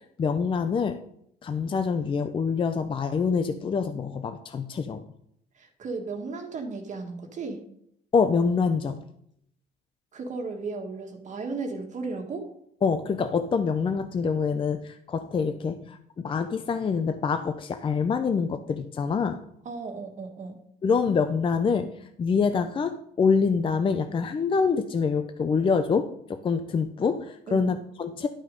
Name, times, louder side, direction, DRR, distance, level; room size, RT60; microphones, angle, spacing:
voice 1, 0.2-1.0 1.4-5.0 8.1-9.0 12.8-19.4 20.8-21.9 22.2-28.3, left 5 dB, 30° left, 9 dB, 0.6 m, -25 dB
voice 2, 5.5-7.6 10.1-12.5 19.7-20.6 27.5-27.7, right 4 dB, 45° right, 3 dB, 1.7 m, -35 dB
11.0 x 6.3 x 5.2 m, 0.72 s
cardioid pair, 110°, 17 cm